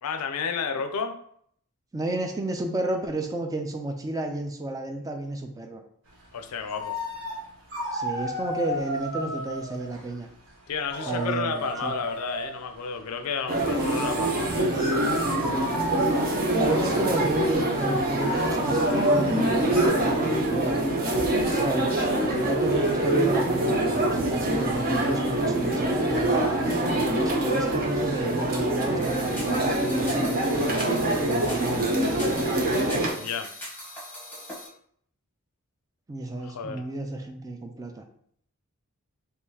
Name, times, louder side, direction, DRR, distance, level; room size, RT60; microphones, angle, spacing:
voice 1, 0.0-1.2 6.3-7.0 10.7-14.6 33.1-33.5 36.4-36.9, left 6 dB, 80° left, 7 dB, 0.4 m, -32 dB
voice 2, 1.9-5.8 7.9-10.3 11.1-11.9 15.4-15.7 16.6-20.8 21.5-22.0 22.3-30.8 31.2-32.5 36.1-38.0, right 2 dB, 15° right, 4 dB, 0.3 m, -32 dB
sound 1, 6.4-6.5 6.7-7.4 7.7-10.2 10.7-12.6 13.7-19.9, right 1 dB, 60° right, 1.1 m, -33 dB
sound 2, 13.5-33.1, right 1 dB, 40° right, 0.7 m, -25 dB
sound 3, 29.0-34.7, left 1 dB, 10° left, 0.9 m, -41 dB
3.7 x 2.7 x 2.7 m, 0.65 s
head